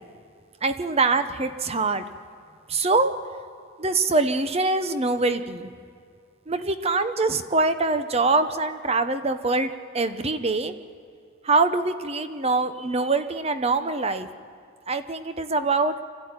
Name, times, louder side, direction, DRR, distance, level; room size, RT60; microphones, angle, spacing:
voice 1, 0.6-2.0 2.7-3.1 3.8-5.7 6.5-10.7 11.4-14.3 14.9-15.9, right 3 dB, 30° right, 10 dB, 0.9 m, -24 dB
25.5 x 14.5 x 9.6 m, 2.3 s
head